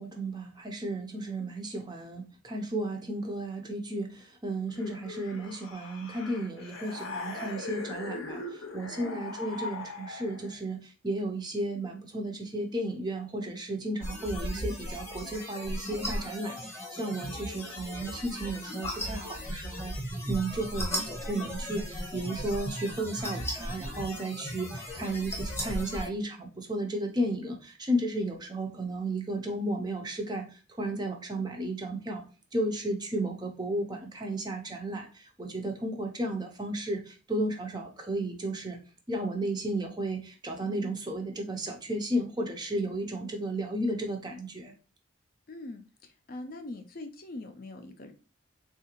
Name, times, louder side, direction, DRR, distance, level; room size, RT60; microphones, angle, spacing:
voice 1, 0.0-19.9 20.3-30.5 30.8-32.2 32.5-38.8 39.1-44.7, right 1 dB, 20° right, 3 dB, 0.5 m, -33 dB
sound 1, 4.7-10.6, left 3 dB, 80° left, 0.6 m, -40 dB
sound 2, 14.0-26.1, equal, 10° left, 0.9 m, -36 dB
voice 2, 45.5-48.1, left 2 dB, 45° left, 6 dB, 0.4 m, -42 dB
3.6 x 2.4 x 2.9 m, 0.34 s
head